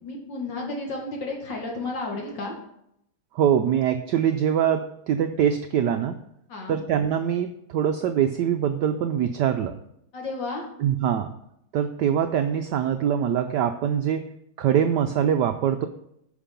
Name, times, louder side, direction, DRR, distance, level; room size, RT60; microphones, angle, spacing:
voice 1, 0.0-2.5 6.5-6.8 10.1-10.6, left 2 dB, 55° left, 0 dB, 2.5 m, -32 dB
voice 2, 3.3-6.2 6.7-9.7 10.8-11.3 11.7-14.3 14.6-15.9, right 9 dB, 80° right, 7 dB, 0.9 m, -23 dB
9.9 x 5.4 x 5.2 m, 0.75 s
omnidirectional pair, 2.4 m